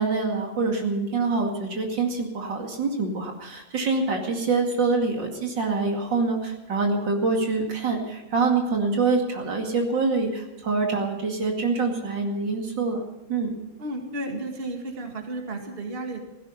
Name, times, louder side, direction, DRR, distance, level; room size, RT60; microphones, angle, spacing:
voice 1, 0.0-13.0 13.3-13.5, right 4 dB, 75° right, 2 dB, 3.0 m, -25 dB
voice 2, 13.8-16.2, right 2 dB, 30° right, 3 dB, 2.1 m, -33 dB
16.5 x 15.5 x 5.6 m, 0.99 s
omnidirectional pair, 2.0 m